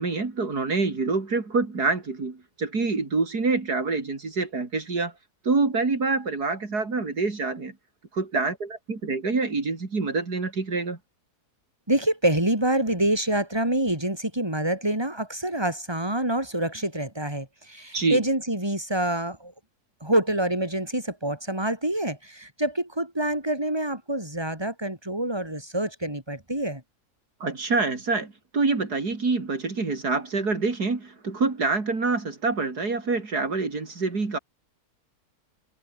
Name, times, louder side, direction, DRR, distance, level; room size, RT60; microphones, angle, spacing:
voice 1, 0.0-5.1 5.4-7.7 8.1-11.0 17.9-18.2 27.4-34.4, right 3 dB, 75° right, 4.0 m, -26 dB
voice 2, 11.9-19.5 20.0-26.8, right 1 dB, 15° right, 5.7 m, -26 dB
omnidirectional pair, 1.7 m